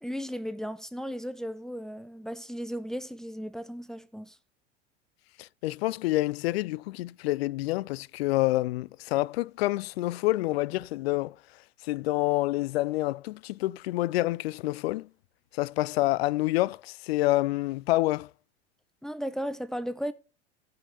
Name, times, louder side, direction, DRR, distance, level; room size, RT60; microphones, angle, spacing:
voice 1, 0.0-4.4 19.0-20.1, equal, ahead, 0.8 m, -35 dB
voice 2, 5.4-11.3 11.8-15.1 15.5-18.3, left 18 dB, 60° left, 0.5 m, -28 dB
15.5 x 5.7 x 3.5 m
hypercardioid pair, 85°, 34 cm